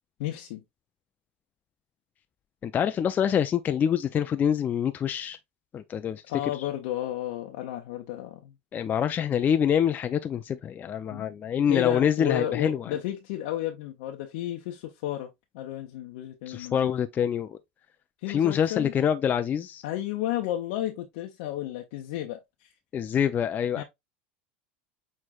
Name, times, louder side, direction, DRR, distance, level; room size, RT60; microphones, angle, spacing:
voice 1, 0.2-0.6 6.3-8.5 11.1-11.3 11.7-16.9 18.2-18.9 19.8-22.7 23.8-23.9, left 13 dB, 70° left, 0.7 m, -32 dB
voice 2, 2.6-5.4 5.7-6.2 8.7-12.9 16.5-17.6 18.3-19.8 22.9-23.8, left 8 dB, 30° left, 0.4 m, -26 dB
6.2 x 3.2 x 2.4 m
hypercardioid pair, 100°, 6 cm